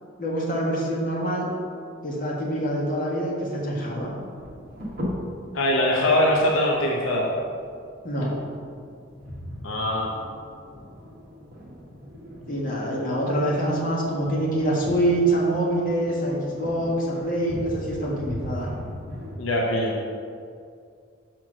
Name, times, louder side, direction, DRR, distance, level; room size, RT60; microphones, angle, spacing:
voice 1, 0.2-1.5 2.0-4.1 8.0-8.3 12.5-18.7, right 1 dB, 45° left, -4 dB, 1.6 m, -25 dB
sound 1, 3.9-19.4, equal, 50° right, 1.4 m, -39 dB
voice 2, 5.5-7.3 9.6-10.1 19.4-20.0, left 1 dB, 75° left, -2 dB, 0.8 m, -22 dB
6.1 x 4.5 x 6.1 m, 2.3 s
head